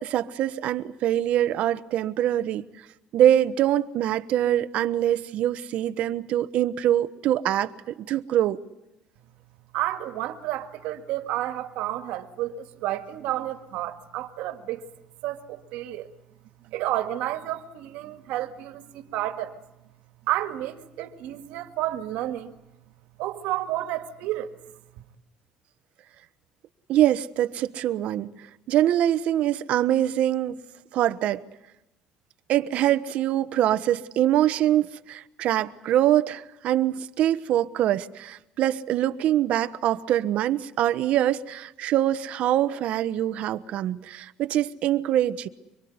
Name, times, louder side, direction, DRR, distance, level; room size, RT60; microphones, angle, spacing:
voice 1, 0.0-2.7 3.1-8.6 26.9-30.6 30.9-31.4 32.5-45.5, right 12 dB, 60° right, 1.1 m, -24 dB
voice 2, 9.7-14.9 15.2-16.1 16.6-19.6 20.2-22.5 23.2-24.5 25.0-25.1, right 14 dB, 80° right, 2.0 m, -31 dB
25.0 x 23.0 x 9.5 m
cardioid pair, 130°, 2 cm